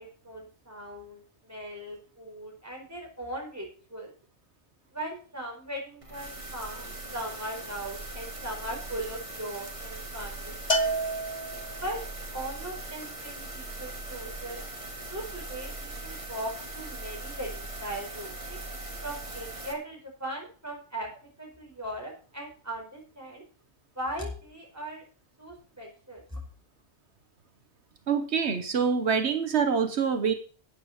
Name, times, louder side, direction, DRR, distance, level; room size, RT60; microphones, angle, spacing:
voice 1, 0.0-4.1 4.9-10.9 11.8-12.0 12.3-14.6 15.1-18.6 19.0-23.4 23.9-25.0 25.4-26.4, right 1 dB, 15° right, 0 dB, 4.8 m, -39 dB
sound 1, 6.0-19.7, right 2 dB, 30° right, 2.1 m, -40 dB
Bell, 10.7-12.1, right 1 dB, 40° left, 1.1 m, -29 dB
voice 2, 28.1-30.3, right 6 dB, 80° right, 7 dB, 1.4 m, -25 dB
13.0 x 8.8 x 4.2 m, 0.40 s
omnidirectional pair, 1.1 m